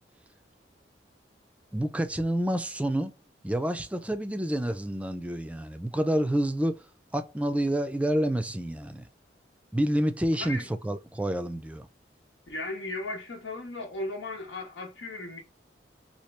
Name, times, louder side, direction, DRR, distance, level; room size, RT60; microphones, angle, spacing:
voice 1, 1.7-3.1 3.4-6.9 7.1-9.1 9.7-11.9, right 1 dB, 10° right, 0.4 m, -28 dB
voice 2, 10.4-10.9 12.5-15.4, left 2 dB, 90° left, 1.1 m, -36 dB
2.9 x 2.8 x 3.2 m
head